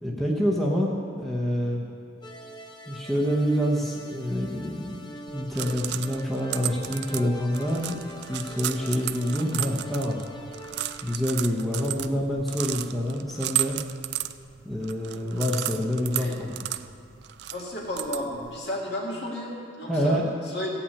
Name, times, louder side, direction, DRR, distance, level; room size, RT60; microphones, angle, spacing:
voice 1, 0.0-1.9 2.9-8.0 8.3-10.2 11.0-13.8 14.6-16.5 19.9-20.3, equal, ahead, -4 dB, 0.9 m, -27 dB
sound 1, 2.2-11.2, equal, 25° left, 0.6 m, -43 dB
sound 2, 5.3-18.6, right 14 dB, 55° right, 0.3 m, -34 dB
voice 2, 17.5-20.7, left 1 dB, 55° left, -3 dB, 2.4 m, -33 dB
15.5 x 5.8 x 8.5 m, 2.4 s
head